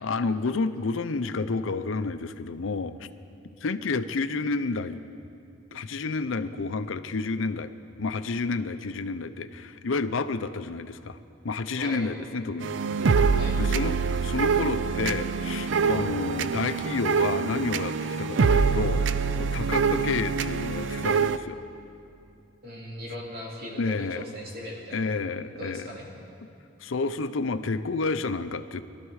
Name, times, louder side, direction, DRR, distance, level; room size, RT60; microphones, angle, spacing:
voice 1, 0.0-3.1 3.6-5.0 5.7-7.7 8.0-11.2 11.4-12.7 13.6-19.0 19.3-21.6 23.8-24.2 24.9-25.9 26.8-28.8, left 3 dB, 75° left, 11 dB, 0.6 m, -30 dB
voice 2, 11.7-12.1 13.3-13.6 22.6-25.1 25.5-26.1, equal, 50° right, -2 dB, 2.7 m, -39 dB
sound 1, 12.6-21.4, right 5 dB, 65° right, 0.4 m, -25 dB
22.0 x 12.5 x 4.8 m, 2.6 s
head